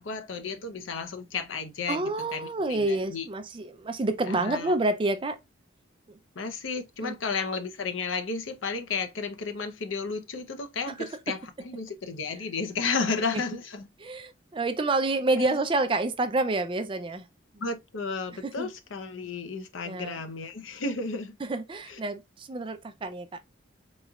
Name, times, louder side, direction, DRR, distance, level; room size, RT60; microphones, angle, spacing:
voice 1, 0.0-3.3 4.2-4.7 6.4-13.9 15.4-15.6 17.6-21.3 21.9-22.0, left 4 dB, 90° left, 0.7 m, -33 dB
voice 2, 1.9-5.4 6.1-6.2 7.0-7.2 11.0-11.4 14.0-17.2 18.4-18.7 19.9-20.2 21.4-23.4, right 2 dB, 25° right, 0.4 m, -28 dB
4.0 x 3.0 x 2.3 m
head